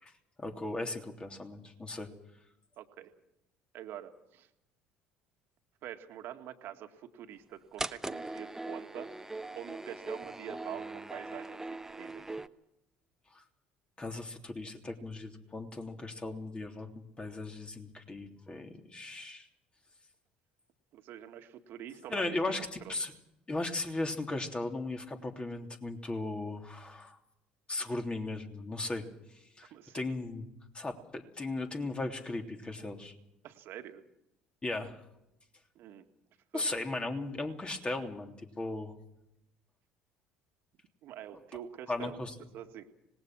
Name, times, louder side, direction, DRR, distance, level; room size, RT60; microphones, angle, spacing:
voice 1, 0.4-2.1 13.3-13.4 14.0-19.5 22.1-23.1 23.5-27.2 27.7-29.0 29.6-30.5 30.7-33.1 34.6-35.0 36.5-38.9 41.9-42.3, left 2 dB, 25° left, 4 dB, 3.3 m, -37 dB
voice 2, 2.8-3.1 3.7-4.5 5.8-9.1 9.5-12.4 20.9-22.9 29.7-30.0 33.4-34.0 35.8-36.1 36.5-36.7 41.0-42.2 42.5-42.9, right 11 dB, 60° right, 7 dB, 1.9 m, -46 dB
sound 1, 7.8-12.5, right 2 dB, 10° right, 1.0 m, -40 dB
25.5 x 19.5 x 6.3 m, 0.85 s
hypercardioid pair, 60°, 4 cm